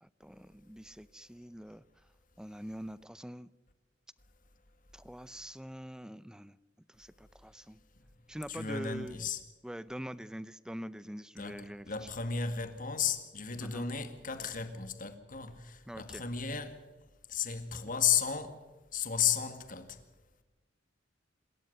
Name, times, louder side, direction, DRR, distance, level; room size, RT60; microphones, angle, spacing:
voice 1, 0.0-1.8 2.4-3.5 4.9-6.6 6.9-7.8 8.3-9.1 9.6-11.9 13.6-13.9 15.9-16.2, equal, 5° right, 0.6 m, -44 dB
voice 2, 8.5-9.4 11.4-16.8 17.3-18.6 18.9-20.0, left 7 dB, 45° left, 2.0 m, -34 dB
27.0 x 13.5 x 8.1 m
head